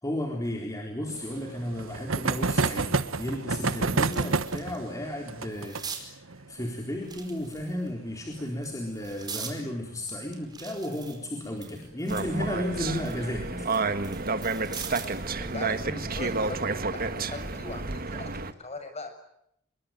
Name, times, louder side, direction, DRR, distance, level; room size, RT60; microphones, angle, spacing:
voice 1, 0.0-13.7, left 1 dB, 15° left, 1 dB, 4.1 m, -34 dB
sound 1, 1.1-10.3 10.5-10.6 10.9-11.0 11.3-11.4 12.8-13.0 13.7-14.1, right 3 dB, 85° right, 1.4 m, -31 dB
sound 2, 3.4-4.8 5.1-6.1 7.0-7.9 8.5-9.6 10.1-12.3 12.7-15.2 16.6-16.8, right 6 dB, 20° right, 4.7 m, -42 dB
sound 3, 12.1-18.5, right 3 dB, 45° right, 1.7 m, -30 dB
voice 2, 14.7-15.0 15.4-16.6 16.9-19.1, left 2 dB, 30° left, 8 dB, 6.5 m, -40 dB
26.5 x 22.5 x 9.2 m, 0.75 s
head